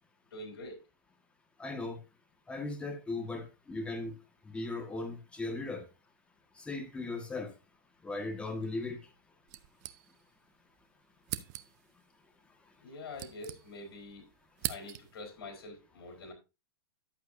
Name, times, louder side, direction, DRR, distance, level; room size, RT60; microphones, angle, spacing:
voice 1, 0.3-0.8 12.8-14.3 14.7-16.3, left 2 dB, 75° left, 4.0 m, -45 dB
voice 2, 1.6-2.0 2.5-4.1 4.5-5.8 6.7-7.5 8.0-9.0, left 2 dB, 10° left, 1.6 m, -37 dB
sound 1, 9.5-10.5 10.7-10.8 11.2-11.9 12.8-14.0 14.3-15.3, right 15 dB, 45° right, 0.8 m, -41 dB
11.5 x 7.9 x 2.7 m
hypercardioid pair, 140°, 13 cm